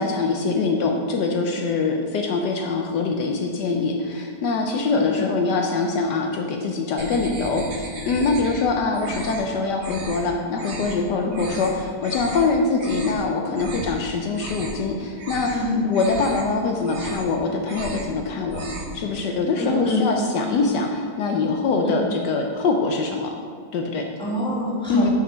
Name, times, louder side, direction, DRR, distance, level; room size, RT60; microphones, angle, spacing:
voice 1, 0.0-15.5 15.8-23.3 23.7-24.0 24.9-25.1, left 4 dB, 70° left, 2 dB, 1.2 m, -23 dB
voice 2, 4.9-5.3 11.2-11.4 15.5-15.8 19.6-20.0 20.5-20.6 21.8-21.9 24.2-25.1, left 1 dB, 5° left, -6 dB, 1.6 m, -26 dB
sound 1, 7.0-8.6 8.9-9.5 9.8-10.2 10.6-11.0 11.3-11.7 12.0-12.4 12.7-13.2 13.5-13.9 14.3-14.9 15.2-15.6 15.9-16.4 16.8-17.3 17.6-18.1 18.4-19.0, right 1 dB, 45° right, 1.2 m, -34 dB
6.6 x 5.2 x 5.6 m, 2.1 s
omnidirectional pair, 2.0 m